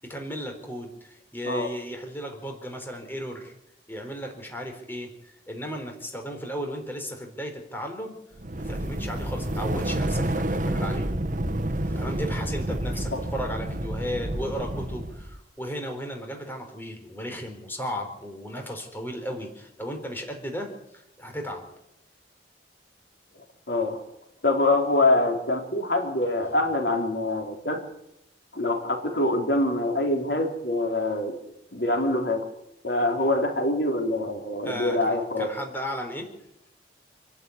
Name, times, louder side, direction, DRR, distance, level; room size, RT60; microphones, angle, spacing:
voice 1, 0.1-3.5 3.9-8.2 8.6-11.1 11.5-21.6 34.6-36.3, equal, 10° left, 3 dB, 4.3 m, -35 dB
sound 1, 8.4-15.4, right 1 dB, 45° right, 1.4 m, -29 dB
voice 2, 23.4-24.0 24.4-27.8 28.5-31.4 31.7-32.4 32.8-35.5, left 2 dB, 65° left, 3 dB, 4.3 m, -25 dB
28.0 x 12.0 x 9.8 m, 0.82 s
head